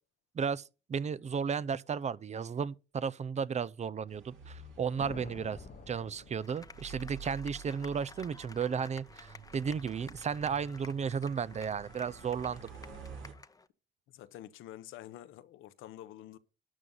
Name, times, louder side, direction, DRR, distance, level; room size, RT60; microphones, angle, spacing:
voice 1, 0.9-5.6 5.9-12.7, right 6 dB, 35° right, 0.6 m, -34 dB
sound 1, 4.1-13.3, right 5 dB, 75° right, 2.7 m, -50 dB
sound 2, 5.0-7.1, left 7 dB, 45° left, 0.9 m, -49 dB
sound 3, 6.4-13.7, left 3 dB, 20° left, 0.8 m, -53 dB
voice 2, 14.1-16.4, left 13 dB, 90° left, 1.0 m, -48 dB
12.5 x 9.3 x 3.9 m
cardioid pair, 90°, 20 cm